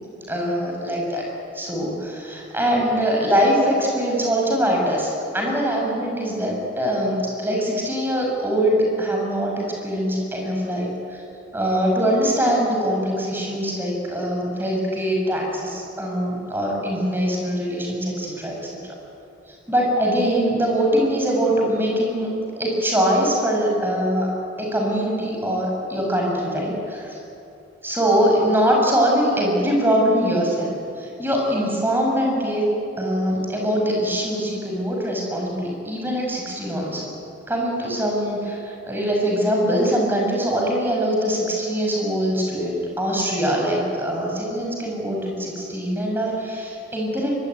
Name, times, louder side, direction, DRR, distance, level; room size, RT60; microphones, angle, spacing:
voice 1, 0.3-1.3 1.5-11.2 11.5-18.6 19.7-22.3 22.6-24.3 24.6-27.2 27.8-32.7 33.0-37.1 37.5-47.3, equal, 10° right, -1 dB, 6.4 m, -22 dB
24.0 x 23.0 x 9.7 m, 2.7 s
head